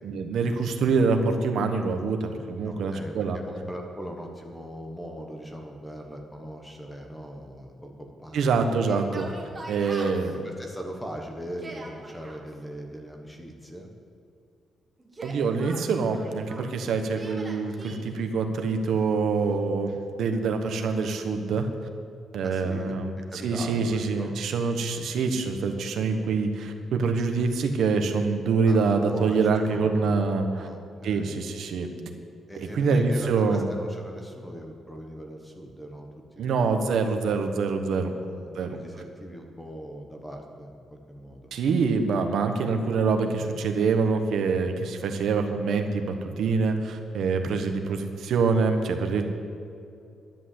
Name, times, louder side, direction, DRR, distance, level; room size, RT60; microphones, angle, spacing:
voice 1, 0.0-3.4 8.3-9.3 9.7-10.5 15.2-19.9 20.2-21.7 22.3-23.2 23.4-30.7 31.0-31.9 32.6-33.7 36.4-38.1 38.5-38.8 41.5-49.2, right 4 dB, 65° right, 5 dB, 1.3 m, -25 dB
voice 2, 2.6-8.6 9.4-9.6 10.4-13.9 22.4-23.0 23.3-24.3 28.7-28.8 29.1-30.1 30.5-31.3 32.5-36.1 36.3-36.8 38.0-41.5, equal, 5° left, 2 dB, 1.1 m, -40 dB
Yell, 8.8-10.3 11.4-12.4 15.0-16.7 17.2-18.0, right 2 dB, 15° right, 1.6 m, -42 dB
11.0 x 10.5 x 7.8 m, 2.6 s
wide cardioid pair, 175°, 0 cm